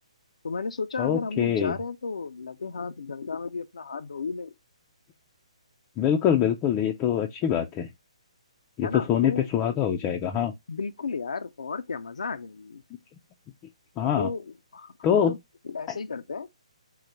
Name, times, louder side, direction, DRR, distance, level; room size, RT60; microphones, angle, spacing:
voice 1, 0.4-4.5 8.8-9.5 10.7-12.8 14.2-15.4 15.6-16.5, left 4 dB, 80° left, 0.4 m, -33 dB
voice 2, 1.0-1.8 6.0-7.9 8.8-10.5 14.0-14.3 15.0-15.4, left 9 dB, 20° left, 0.4 m, -24 dB
3.8 x 2.1 x 4.2 m
hypercardioid pair, 145°, 4 cm